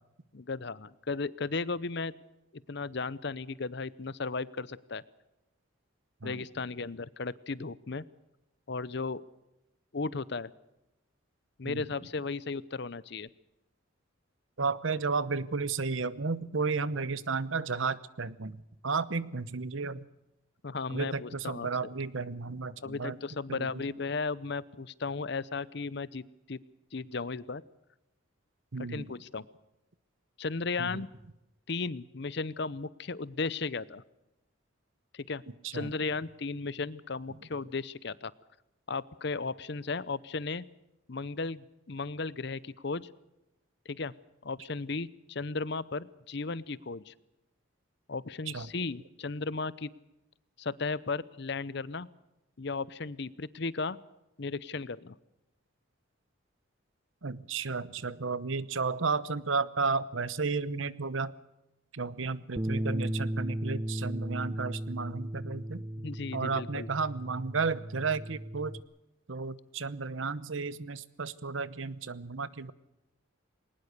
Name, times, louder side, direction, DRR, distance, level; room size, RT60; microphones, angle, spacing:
voice 1, 0.3-2.1 2.7-5.0 6.2-8.0 8.7-9.2 9.9-10.5 11.6-13.3 20.6-21.9 22.8-26.6 26.9-27.6 28.9-29.5 30.4-31.1 31.7-34.0 35.1-35.4 35.7-38.3 38.9-40.6 41.1-43.1 43.9-44.1 44.4-47.1 48.1-49.9 50.6-52.1 52.6-54.0 54.4-55.2 66.0-66.9, left 4 dB, 55° left, 19 dB, 0.7 m, -35 dB
voice 2, 14.6-18.6 18.8-20.0 20.9-23.2 23.5-23.8 28.7-29.1 30.8-31.0 35.6-35.9 48.5-48.7 57.2-61.3 61.9-65.8 66.3-68.7 69.3-72.7, right 4 dB, 70° right, 17 dB, 0.9 m, -33 dB
Bass guitar, 62.6-68.8, right 1 dB, 20° right, 0.7 m, -35 dB
21.0 x 19.5 x 6.7 m, 0.93 s
head